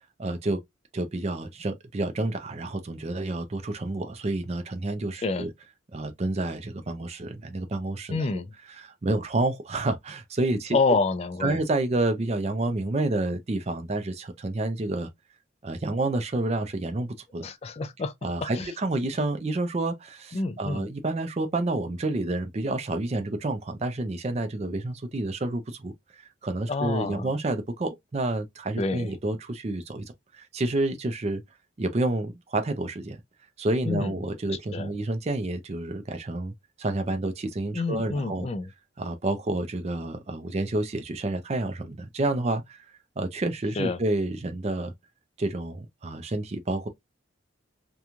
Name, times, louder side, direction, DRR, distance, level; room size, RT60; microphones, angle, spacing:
voice 1, 0.2-0.6 0.9-5.5 5.9-8.3 8.7-10.8 11.4-15.1 15.6-17.5 18.2-30.0 30.3-31.4 31.8-33.2 33.6-36.5 36.8-38.5 39.0-42.8 43.2-44.9 45.4-46.9, right 2 dB, 30° right, 0.4 m, -29 dB
voice 2, 8.1-8.5 10.7-11.6 17.4-18.1 18.4-18.7 20.3-20.9 26.7-27.3 28.8-29.1 33.8-34.1 34.7-34.9 37.7-38.7 43.8-44.0, left 3 dB, 30° left, 0.3 m, -28 dB
3.0 x 2.2 x 2.4 m
head